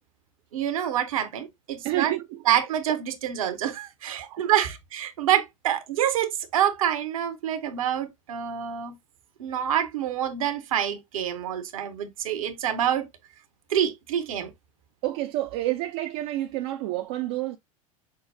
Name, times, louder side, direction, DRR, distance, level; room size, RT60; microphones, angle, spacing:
voice 1, 0.5-2.1 2.5-9.0 9.4-13.1 13.7-14.5, right 10 dB, 75° right, 0.9 m, -27 dB
voice 2, 1.8-2.4 4.2-4.5 15.0-17.6, right 15 dB, 55° right, 0.5 m, -29 dB
5.6 x 2.0 x 3.2 m
hypercardioid pair, 80°, 18 cm